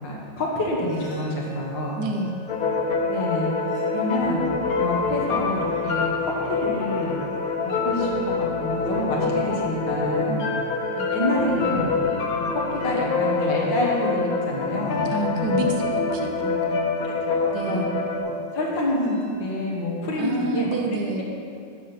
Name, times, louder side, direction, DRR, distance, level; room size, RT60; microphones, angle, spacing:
voice 1, 0.0-2.0 3.1-3.5 3.9-4.4 4.8-7.2 7.7-10.4 11.1-11.9 12.5-15.0 15.4-15.6 17.0-17.8 18.2-21.2, left 1 dB, 80° left, -3 dB, 2.2 m, -27 dB
sound 1, 0.5-19.8, left 3 dB, 30° left, 1.2 m, -46 dB
voice 2, 2.0-2.4 10.3-10.4 10.8-11.1 15.1-16.8 17.5-17.9 20.2-21.2, right 3 dB, 70° right, 3 dB, 1.4 m, -29 dB
sound 2, 2.5-18.2, left 4 dB, 60° left, 1.1 m, -26 dB
7.5 x 6.9 x 5.7 m, 2.4 s
omnidirectional pair, 2.0 m